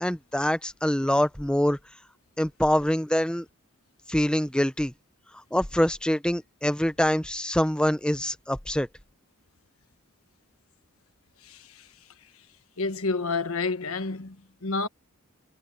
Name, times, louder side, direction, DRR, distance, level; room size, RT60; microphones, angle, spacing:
voice 1, 0.0-1.8 2.4-3.5 4.1-4.9 5.5-8.9, equal, 5° left, 0.6 m, -25 dB
voice 2, 11.4-11.9 12.8-14.9, left 3 dB, 85° left, 1.3 m, -30 dB
head